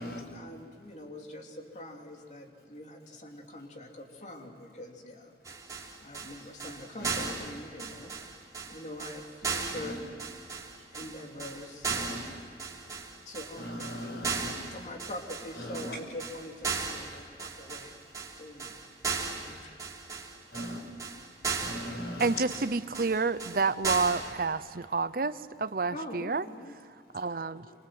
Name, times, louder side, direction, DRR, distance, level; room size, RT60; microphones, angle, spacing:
voice 1, 0.3-5.3 6.0-8.1 8.4-10.1 10.9-12.0 13.2-13.8 14.7-17.9 18.4-18.7 19.5-19.7 25.9-26.7 27.1-27.2, left 1 dB, 40° left, 2 dB, 3.2 m, -44 dB
sound 1, 5.4-24.3, right 5 dB, 20° right, 3.7 m, -36 dB
voice 2, 7.0-7.3 9.7-9.9 11.9-12.3 13.6-14.6 15.5-16.0 20.5-20.9 21.6-22.4, left 1 dB, 65° left, 3 dB, 5.6 m, -38 dB
voice 3, 22.2-26.4 27.1-27.7, right 4 dB, 55° right, 14 dB, 0.7 m, -29 dB
28.5 x 26.5 x 7.8 m, 2.4 s
head